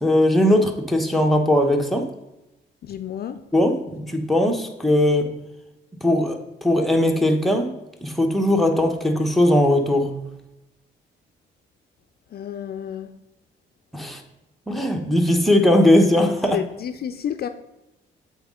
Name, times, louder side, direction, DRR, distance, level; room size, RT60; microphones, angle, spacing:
voice 1, 0.0-2.1 3.5-5.3 6.0-7.7 8.0-10.2 13.9-14.2 14.7-16.6, left 1 dB, ahead, 0.9 m, -19 dB
voice 2, 2.8-3.4 12.3-13.1 16.5-17.5, left 9 dB, 50° left, 0.4 m, -30 dB
7.8 x 4.2 x 3.7 m
cardioid pair, 90°, 20 cm